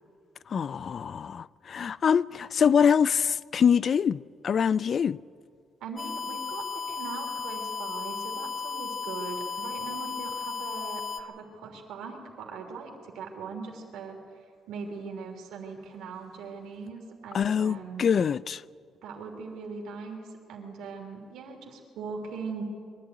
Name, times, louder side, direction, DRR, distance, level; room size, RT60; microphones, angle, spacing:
voice 1, 0.5-5.2 17.3-18.6, left 7 dB, 50° left, 0.4 m, -24 dB
voice 2, 5.8-14.2 14.7-18.1 19.0-20.2 20.5-22.6, right 5 dB, 90° right, 3.2 m, -40 dB
sound 1, 6.0-11.2, left 5 dB, 30° left, 1.1 m, -35 dB
23.0 x 12.0 x 9.5 m
cardioid pair, 90°, 0 cm